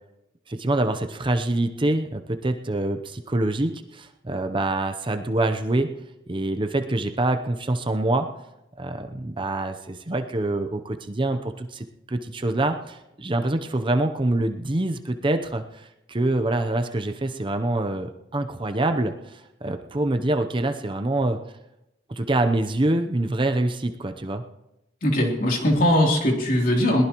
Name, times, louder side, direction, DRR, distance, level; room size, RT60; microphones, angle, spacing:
voice 1, 0.5-5.9 6.3-8.3 8.8-21.4 22.1-24.4, right 2 dB, 25° right, 7 dB, 0.7 m, -25 dB
voice 2, 25.0-27.1, left 1 dB, 50° left, 0 dB, 3.2 m, -20 dB
21.5 x 19.0 x 3.0 m, 0.91 s
head